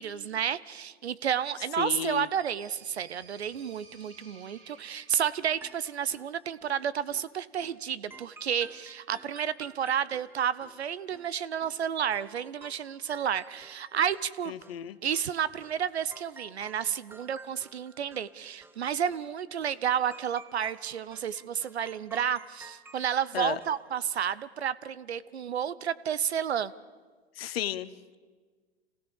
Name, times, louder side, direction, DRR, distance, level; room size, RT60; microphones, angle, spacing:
voice 1, 0.0-14.5 15.0-26.7, right 8 dB, 80° right, 17 dB, 0.8 m, -31 dB
voice 2, 1.8-2.3 14.5-15.0 23.3-23.6 27.4-28.2, left 11 dB, 65° left, 15 dB, 1.0 m, -33 dB
sound 1, 1.9-5.7, right 4 dB, 40° right, 4.5 m, -55 dB
sound 2, 5.3-6.8 7.1-7.3 7.6-7.8 8.1-11.8 12.1-14.4 14.6-15.3 15.6-15.8 16.1-18.3 18.6-18.8 19.1-19.3 19.6-19.8 20.1-23.9, right 3 dB, 5° right, 0.8 m, -52 dB
27.0 x 16.5 x 7.2 m, 1.5 s
figure-of-eight pair, 95°, 32 cm